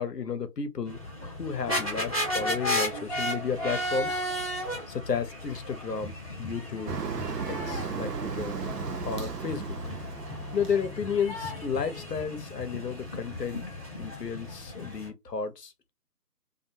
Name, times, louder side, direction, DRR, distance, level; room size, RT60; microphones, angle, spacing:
voice 1, 0.0-4.2 4.9-6.9 7.4-8.5 9.0-9.8 10.5-13.6 14.0-15.9, left 6 dB, 75° left, 0.8 m, -32 dB
sound 1, 0.9-15.1, left 1 dB, 20° left, 0.9 m, -35 dB
Motor vehicle (road), 6.9-11.8, right 5 dB, 75° right, 0.8 m, -35 dB
2.4 x 2.3 x 2.7 m
figure-of-eight pair, 160°, 49 cm